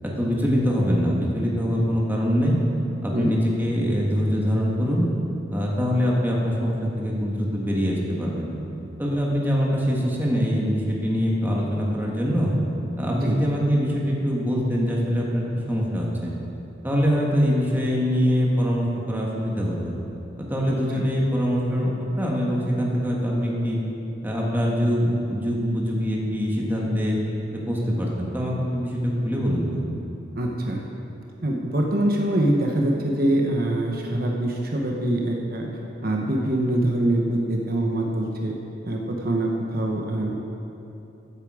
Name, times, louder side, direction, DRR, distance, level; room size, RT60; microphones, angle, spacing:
voice 1, 0.0-2.6 3.0-5.1 5.5-8.5 9.0-12.5 13.0-16.3 16.8-19.9 20.4-23.8 24.2-27.2 27.5-29.8, equal, 10° right, -3 dB, 1.7 m, -23 dB
voice 2, 13.1-13.4 20.9-21.0 30.3-30.8 31.4-35.7 36.0-38.5 38.8-40.3, right 1 dB, 55° right, 0 dB, 1.1 m, -24 dB
14.5 x 8.5 x 5.0 m, 2.9 s
head